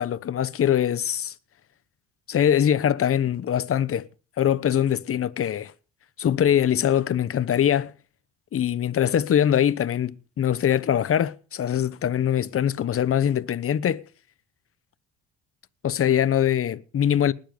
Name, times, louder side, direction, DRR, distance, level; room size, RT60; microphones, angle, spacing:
voice 1, 0.0-1.3 2.3-4.1 4.4-5.7 6.2-7.9 8.5-14.0 15.8-17.3, left 10 dB, 40° left, 1.0 m, -23 dB
20.0 x 7.3 x 5.3 m
supercardioid pair, 80°, 34 cm